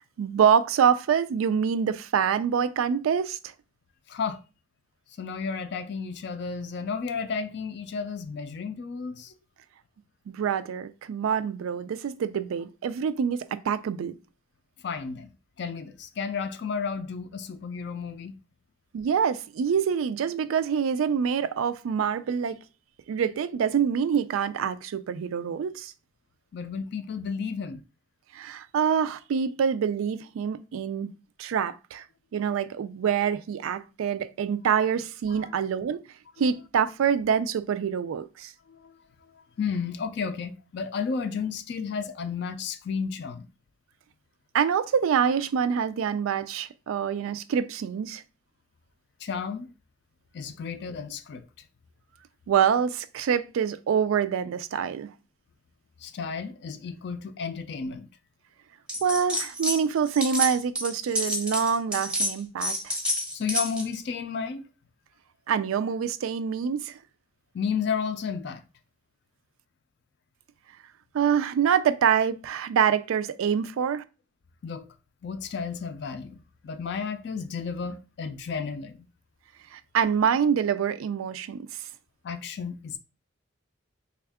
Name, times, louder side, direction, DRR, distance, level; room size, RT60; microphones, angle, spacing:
voice 1, 0.2-3.4 10.3-14.1 18.9-22.6 23.1-25.9 28.3-31.1 31.4-32.0 32.3-36.0 36.4-38.5 44.5-48.2 52.5-55.1 59.0-62.9 65.5-67.0 71.1-74.0 79.7-81.7, right 7 dB, 85° right, 0.3 m, -26 dB
voice 2, 4.1-4.4 5.2-9.3 14.8-15.3 15.6-18.4 26.5-27.8 35.4-35.5 38.7-38.9 39.3-43.5 49.2-49.7 50.3-51.5 56.0-58.1 63.3-64.7 67.5-68.6 74.6-74.9 75.2-79.1 82.2-83.0, left 5 dB, 55° left, 0.3 m, -32 dB
sound 1, 58.9-59.8 60.1-63.9, equal, 5° right, 0.6 m, -29 dB
3.5 x 2.3 x 3.4 m
head